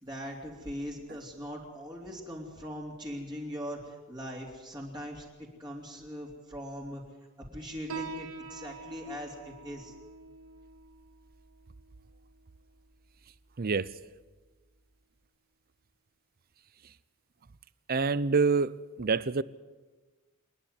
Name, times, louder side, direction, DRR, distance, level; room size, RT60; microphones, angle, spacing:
voice 1, 0.0-7.0 7.5-9.9, equal, 20° right, 3.3 m, -40 dB
Piano, 7.9-15.0, right 4 dB, 85° right, 2.0 m, -47 dB
voice 2, 13.6-13.9 17.9-18.7 19.0-19.4, right 4 dB, 45° right, 0.6 m, -26 dB
27.5 x 10.5 x 9.7 m
head